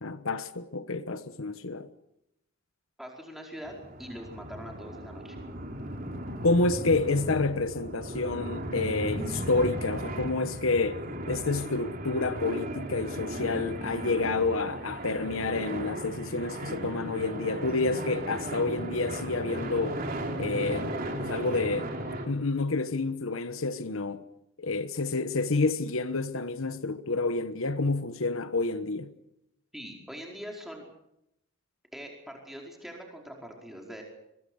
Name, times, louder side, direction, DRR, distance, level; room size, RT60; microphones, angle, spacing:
voice 1, 0.0-1.9 6.4-11.0 11.3-20.0 20.3-21.9 22.3-24.2 24.6-29.1, left 3 dB, 85° left, 1.2 m, -29 dB
voice 2, 3.0-3.7 4.0-5.4 29.7-30.8 31.9-34.0, equal, ahead, 4.9 m, -43 dB
sound 1, 3.6-22.3, right 1 dB, 45° right, 3.2 m, -36 dB
23.5 x 22.0 x 6.5 m
head